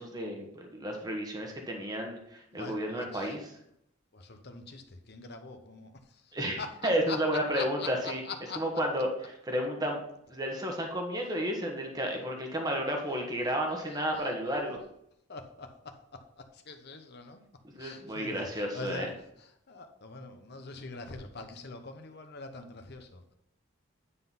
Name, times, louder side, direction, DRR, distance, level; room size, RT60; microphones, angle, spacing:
voice 1, 0.0-3.5 6.3-6.6 6.8-8.2 8.6-9.1 9.5-10.0 10.3-14.8 17.7-19.1, equal, 20° right, 1 dB, 1.1 m, -32 dB
voice 2, 2.5-3.4 4.1-7.2 7.5-8.6 13.9-14.0 15.3-17.4 17.8-23.3, left 4 dB, 50° left, 6 dB, 0.9 m, -44 dB
9.7 x 3.8 x 5.5 m, 0.75 s
head